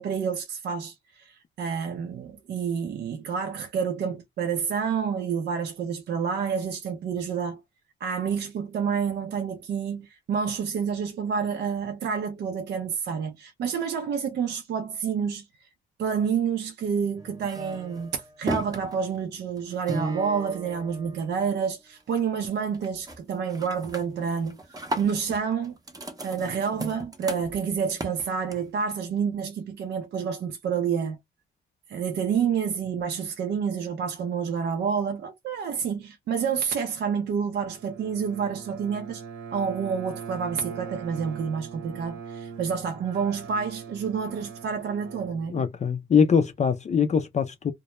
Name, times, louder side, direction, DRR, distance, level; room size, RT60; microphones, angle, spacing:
voice 1, 0.0-7.6 8.0-15.4 16.0-24.6 25.0-25.8 26.2-31.2 31.9-39.2 39.5-45.5, right 6 dB, 60° right, 0.5 m, -29 dB
sound 1, 17.2-21.7 22.0-22.4 22.7-23.2 23.5-28.8, right 2 dB, 20° right, 0.6 m, -36 dB
Bowed string instrument, 37.7-46.1, right 5 dB, 85° right, 1.1 m, -41 dB
voice 2, 45.5-47.7, left 6 dB, 35° left, 0.4 m, -22 dB
2.2 x 2.1 x 2.9 m
cardioid pair, 90°, 20 cm